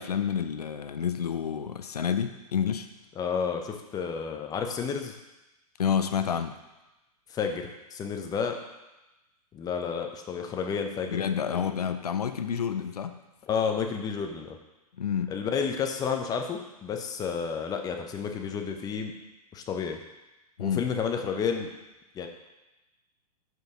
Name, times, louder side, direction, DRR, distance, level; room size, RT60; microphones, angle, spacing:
voice 1, 0.0-2.9 5.8-6.6 11.1-13.2 15.0-15.4 20.6-20.9, left 8 dB, 85° left, 8 dB, 0.6 m, -29 dB
voice 2, 3.2-5.2 7.3-8.6 9.5-11.2 11.5-11.9 13.5-14.6 15.3-19.1 19.5-20.0 20.6-21.7 22.1-22.3, left 6 dB, 20° left, 4 dB, 0.7 m, -31 dB
6.3 x 5.3 x 4.8 m, 1.0 s
hypercardioid pair, 115°, 20 cm